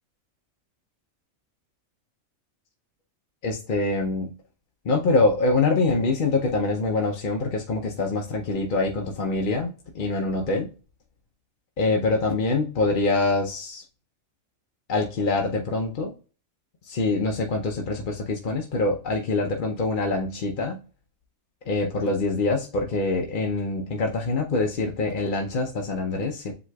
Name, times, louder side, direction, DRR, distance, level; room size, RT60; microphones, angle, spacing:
voice 1, 3.4-4.3 4.8-10.7 11.8-13.8 14.9-16.1 16.9-20.8 21.7-26.5, left 3 dB, 45° left, 1 dB, 0.7 m, -25 dB
7.8 x 3.1 x 2.2 m, 0.34 s
omnidirectional pair, 1.4 m